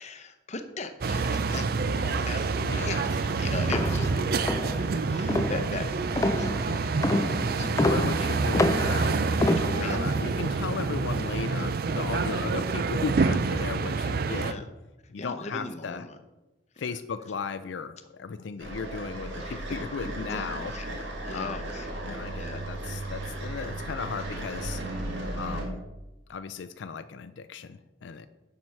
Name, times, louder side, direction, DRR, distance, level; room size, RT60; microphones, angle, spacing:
voice 1, 0.0-5.9 6.3-7.7 9.4-10.5 12.3-12.5 14.3-14.7 15.2-16.2 16.8-16.9 19.4-19.5 20.3-20.5 20.7-20.9 21.2-21.9 22.3-22.7, left 3 dB, 40° left, 8 dB, 0.8 m, -39 dB
sound 1, 1.0-14.5, right 4 dB, 55° right, 0.4 m, -27 dB
voice 2, 2.5-3.1 7.6-14.7 15.1-16.1 16.8-21.7 22.0-24.8 25.3-25.8 26.3-28.3, left 5 dB, 85° left, 11 dB, 0.4 m, -36 dB
sound 2, 3.7-10.1, left 2 dB, 20° left, 0.3 m, -29 dB
sound 3, 18.6-25.7, right 1 dB, 75° right, 1.9 m, -35 dB
7.5 x 6.0 x 5.4 m, 1.0 s
head